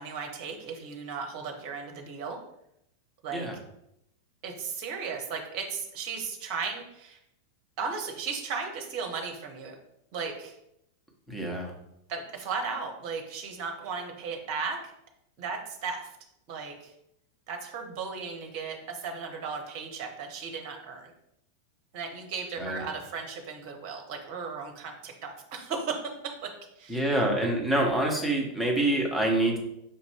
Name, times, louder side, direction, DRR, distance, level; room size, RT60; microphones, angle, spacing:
voice 1, 0.0-2.4 3.2-3.5 4.4-7.2 7.8-9.8 10.1-10.6 12.1-14.9 15.4-16.1 16.5-16.9 17.5-21.1 21.9-26.0 26.4-26.5 26.8-27.0, right 5 dB, 45° right, 4 dB, 0.7 m, -36 dB
voice 2, 11.3-11.7 22.6-22.8 26.9-29.6, right 1 dB, 5° left, 0 dB, 1.0 m, -26 dB
5.3 x 2.5 x 3.5 m, 0.78 s
figure-of-eight pair, 90°, 0 cm